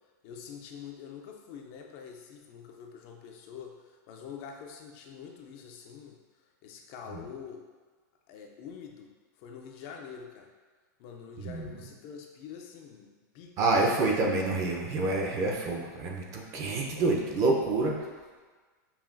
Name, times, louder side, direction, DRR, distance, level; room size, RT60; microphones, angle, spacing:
voice 1, 0.2-6.2 6.6-7.6 8.3-10.5 11.0-13.7 16.9-17.1, left 7 dB, 40° left, 2 dB, 0.4 m, -45 dB
voice 2, 11.4-11.7 13.6-18.0, right 2 dB, 30° right, 0 dB, 0.6 m, -27 dB
5.5 x 2.3 x 2.5 m, 1.4 s
supercardioid pair, 145°, 10 cm